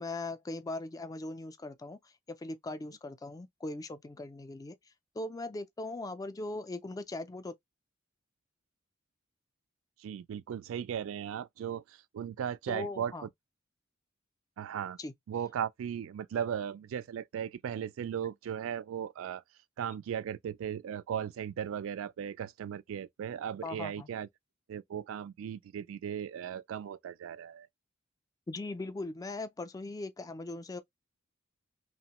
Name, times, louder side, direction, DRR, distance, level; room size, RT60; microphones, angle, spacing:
voice 1, 0.0-4.8 5.2-7.6 12.7-13.3 15.0-15.1 23.6-24.1 28.5-30.8, left 2 dB, 20° left, 0.3 m, -39 dB
voice 2, 10.0-13.3 14.6-15.0 15.3-19.4 19.8-24.3 24.7-27.7, right 8 dB, 75° right, 0.3 m, -37 dB
2.9 x 2.1 x 2.8 m
head